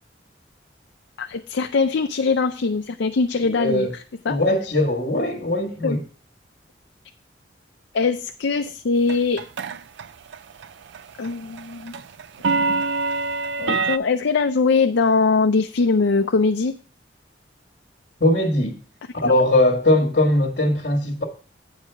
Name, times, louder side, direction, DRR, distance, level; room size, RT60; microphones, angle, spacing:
voice 1, 1.2-3.9 4.3-4.4 5.8-6.0 7.9-9.4 11.2-12.0 12.7-12.8 13.6-16.8 19.2-19.3, left 4 dB, 75° left, 0.5 m, -21 dB
voice 2, 3.5-3.9 4.3-6.0 18.2-18.8 19.1-21.2, left 1 dB, 60° left, 1.6 m, -20 dB
sound 1, 9.1-10.1 10.3-10.7 10.9-14.0, right 4 dB, 75° right, 0.4 m, -24 dB
8.8 x 4.8 x 5.7 m
head